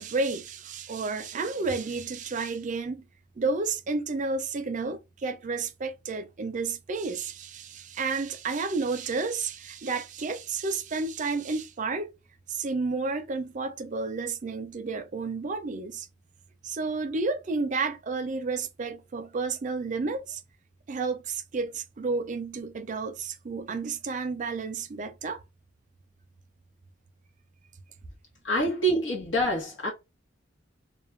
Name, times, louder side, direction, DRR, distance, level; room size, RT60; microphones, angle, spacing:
voice 1, 0.0-3.1 3.4-12.1 12.5-16.1 16.6-20.4 20.9-25.4, right 4 dB, 40° right, 0.4 m, -31 dB
voice 2, 28.4-29.9, right 1 dB, 80° left, 1.0 m, -26 dB
2.3 x 2.2 x 3.1 m
head